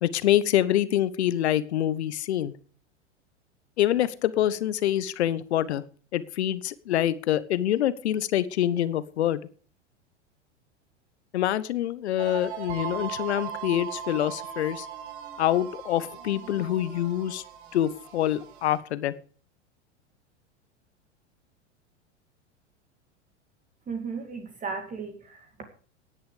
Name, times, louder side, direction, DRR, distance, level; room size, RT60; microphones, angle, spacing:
voice 1, 0.0-2.5 3.8-5.8 6.1-9.4 11.3-14.9 15.4-17.4 17.7-19.1, left 12 dB, 65° left, 17 dB, 1.2 m, -26 dB
sound 1, 12.2-18.8, right 9 dB, 65° right, 3.8 m, -39 dB
voice 2, 23.9-25.6, right 5 dB, 25° right, 4 dB, 2.5 m, -35 dB
17.5 x 10.5 x 5.1 m, 0.43 s
figure-of-eight pair, 95°, 35 cm